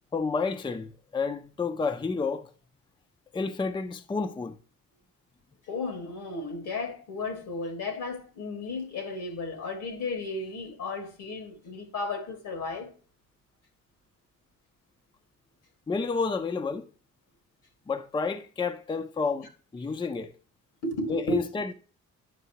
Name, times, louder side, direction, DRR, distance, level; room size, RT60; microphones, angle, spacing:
voice 1, 0.1-2.5 3.3-4.6 15.9-16.9 17.9-20.3 21.1-21.7, left 4 dB, 15° left, 0.5 m, -30 dB
voice 2, 5.7-12.9 20.8-21.4, left 2 dB, 80° left, 2.1 m, -34 dB
9.2 x 5.5 x 2.8 m
cardioid pair, 90°, 30 cm